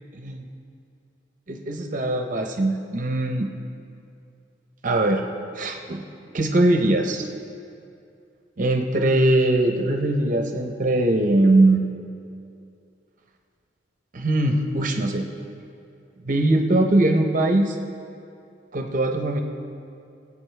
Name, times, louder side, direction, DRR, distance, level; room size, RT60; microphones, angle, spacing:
voice 1, 0.1-0.4 1.5-3.5 4.8-5.2 5.5-6.0 6.3-7.3 8.6-11.8 14.1-15.3 16.2-17.8 18.7-19.4, right 1 dB, 45° right, 4 dB, 0.7 m, -21 dB
20.0 x 8.5 x 3.3 m, 2.5 s
head